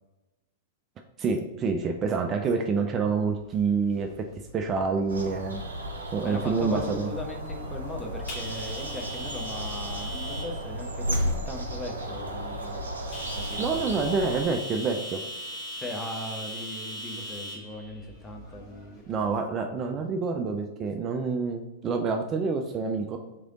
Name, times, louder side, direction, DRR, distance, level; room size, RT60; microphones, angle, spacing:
voice 1, 1.2-4.3 4.5-5.6 6.1-7.1 13.6-15.2 19.1-23.2, right 4 dB, 25° right, 4 dB, 0.3 m, -27 dB
sound 1, 3.3-19.4, equal, 35° left, 1.5 m, -41 dB
sound 2, 5.1-14.4, equal, 75° right, 0.6 m, -34 dB
voice 2, 6.0-12.8 13.3-13.8 15.7-19.0 19.7-19.9, left 1 dB, 10° left, 2 dB, 0.7 m, -39 dB
3.6 x 3.3 x 3.7 m, 1.1 s
figure-of-eight pair, 100°, 0 cm